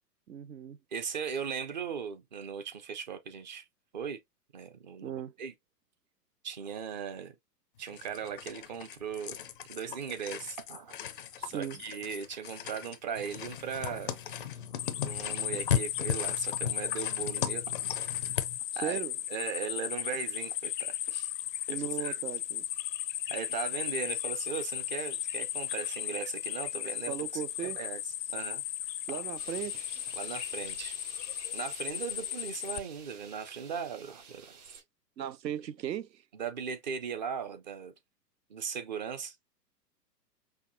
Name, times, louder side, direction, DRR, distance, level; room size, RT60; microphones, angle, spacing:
voice 1, 0.3-0.8 5.0-5.3 11.4-11.8 18.8-19.1 21.7-22.6 27.1-27.8 29.1-30.0 35.2-36.2, right 10 dB, 80° right, 0.7 m, -37 dB
voice 2, 0.9-3.6 3.9-4.2 4.5-5.1 5.4-5.5 6.4-7.3 7.8-9.4 9.7-14.2 15.0-17.6 18.0-18.4 18.8-19.0 19.3-21.3 21.7-22.2 23.3-28.0 28.3-28.6 29.1-29.2 30.2-31.0 31.5-34.6 36.3-37.9 38.5-39.4, right 7 dB, 30° right, 0.4 m, -38 dB
sound 1, 7.9-18.6, left 9 dB, 35° left, 0.4 m, -37 dB
sound 2, 14.8-32.8, left 12 dB, 80° left, 0.6 m, -36 dB
sound 3, 29.4-34.8, right 6 dB, 60° right, 2.8 m, -52 dB
5.7 x 2.3 x 2.6 m
hypercardioid pair, 120°, 50 cm